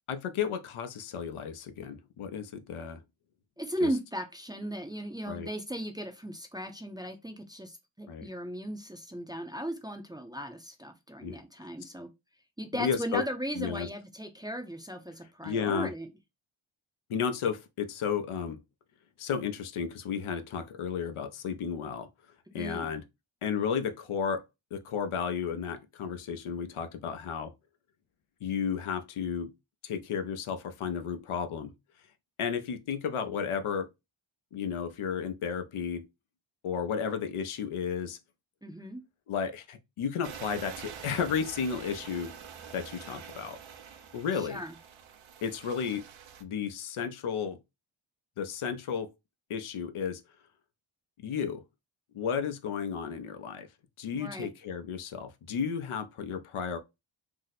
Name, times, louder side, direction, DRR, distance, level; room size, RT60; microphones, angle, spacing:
voice 1, 0.1-3.0 3.8-3.9 5.3-5.5 8.1-8.3 11.2-11.4 12.7-13.2 13.6-13.9 15.4-15.9 17.1-18.6 19.2-22.1 22.5-23.0 23.4-24.4 24.7-27.5 28.4-29.5 29.8-31.7 32.4-33.9 34.5-36.1 36.6-38.2 39.3-42.3 42.7-43.6 44.1-44.6 45.4-46.0 46.4-47.6 48.4-49.1 49.5-50.2 51.2-51.6 52.1-53.7 54.0-56.8, left 7 dB, 80° left, 0.6 m, -33 dB
voice 2, 3.6-12.1 12.6-16.1 22.5-22.9 38.6-39.0 44.4-44.7 54.1-54.5, equal, 10° right, 0.4 m, -37 dB
sound 1, 40.2-46.4, right 7 dB, 70° right, 0.6 m, -46 dB
2.7 x 2.0 x 4.0 m
wide cardioid pair, 80°, 50 cm